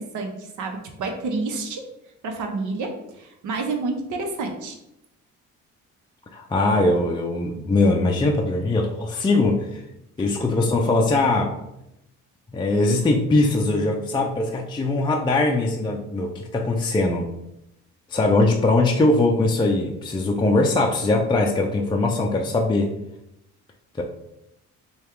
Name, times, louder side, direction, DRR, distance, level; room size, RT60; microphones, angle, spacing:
voice 1, 0.0-1.8 2.2-4.8 10.2-10.3, right 3 dB, 75° right, 4 dB, 0.8 m, -29 dB
voice 2, 6.3-9.8 10.2-11.5 12.5-17.3 18.1-22.9 24.0-24.1, left 2 dB, 15° left, 1 dB, 0.4 m, -21 dB
3.4 x 2.3 x 4.4 m, 0.86 s
cardioid pair, 90°, 30 cm